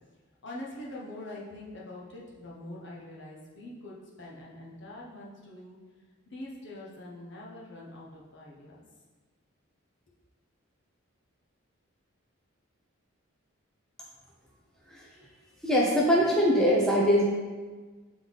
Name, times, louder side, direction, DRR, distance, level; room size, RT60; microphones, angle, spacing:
voice 1, 0.4-5.8 6.3-8.8, left 1 dB, 55° left, -5 dB, 1.2 m, -44 dB
voice 2, 15.6-17.3, equal, 5° left, -4 dB, 0.6 m, -22 dB
6.8 x 3.8 x 4.0 m, 1.4 s
head